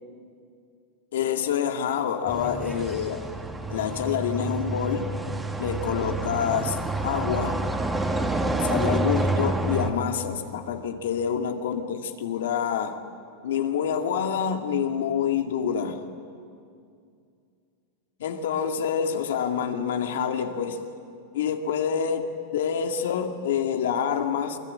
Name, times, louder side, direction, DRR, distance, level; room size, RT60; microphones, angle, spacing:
voice 1, 1.1-3.3 3.7-5.1 5.6-7.6 8.6-13.0 13.4-16.0 18.2-20.8 21.3-22.3 22.5-24.6, left 8 dB, 85° left, 5 dB, 2.2 m, -27 dB
sound 1, 2.3-9.9, right 2 dB, 10° right, 2.2 m, -28 dB
27.5 x 21.5 x 8.8 m, 2.4 s
supercardioid pair, 140°, 0 cm